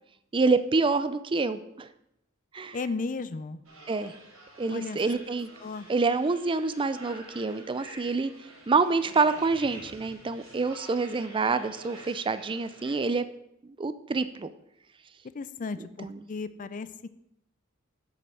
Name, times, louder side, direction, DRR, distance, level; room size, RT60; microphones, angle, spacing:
voice 1, 0.3-1.9 2.5-2.8 3.9-4.1 4.6-5.5 5.9-8.3 8.7-13.3 13.8-14.5 15.8-16.3, right 4 dB, 25° right, 13 dB, 0.4 m, -27 dB
voice 2, 2.7-3.6 4.7-5.0 5.6-5.9 15.3-16.9, left 4 dB, 40° left, 14 dB, 0.5 m, -34 dB
sound 1, 3.6-13.0, right 1 dB, 75° right, 4.0 m, -48 dB
7.7 x 7.7 x 5.7 m, 0.79 s
head